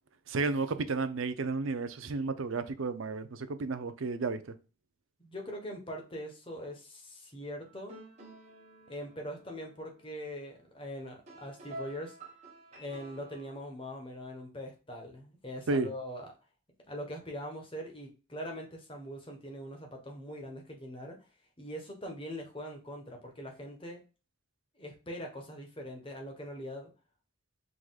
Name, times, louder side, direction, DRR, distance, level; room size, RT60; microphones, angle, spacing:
voice 1, 0.3-4.5 15.7-15.9, right 3 dB, 75° right, 0.5 m, -32 dB
voice 2, 5.2-8.0 8.9-12.2 12.7-16.3 16.9-21.3 21.6-24.0 24.8-26.9, equal, 25° left, 1.2 m, -42 dB
sound 1, 7.6-13.6, right 1 dB, 35° right, 1.3 m, -50 dB
4.7 x 3.9 x 2.3 m
head